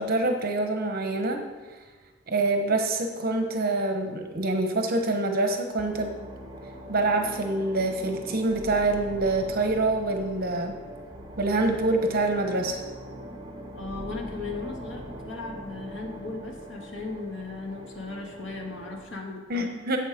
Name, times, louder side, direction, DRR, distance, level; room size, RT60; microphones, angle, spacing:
voice 1, 0.0-1.4 2.3-6.1 6.9-10.8 11.4-12.8 19.5-20.0, right 2 dB, 55° right, 4 dB, 1.1 m, -26 dB
sound 1, 5.8-19.1, equal, 25° right, 1.6 m, -41 dB
voice 2, 13.7-19.7, left 3 dB, 85° left, 0 dB, 2.1 m, -37 dB
11.5 x 8.0 x 5.2 m, 1.3 s
head